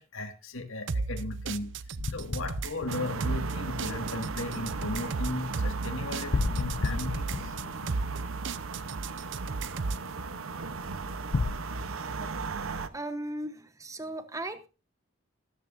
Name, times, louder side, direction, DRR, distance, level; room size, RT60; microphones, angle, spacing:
voice 1, 0.0-1.7 2.1-7.5, left 2 dB, 75° left, 7 dB, 1.9 m, -36 dB
sound 1, 0.9-10.1, right 4 dB, 60° right, 0.6 m, -35 dB
sound 2, 2.0-3.8 6.3-8.8 11.3-11.5, left 3 dB, 50° left, 0.5 m, -32 dB
sound 3, 2.9-12.9, right 4 dB, 85° right, 0.9 m, -37 dB
voice 2, 12.9-14.7, right 1 dB, 15° right, 10 dB, 0.9 m, -37 dB
14.0 x 13.0 x 2.6 m, 0.32 s
head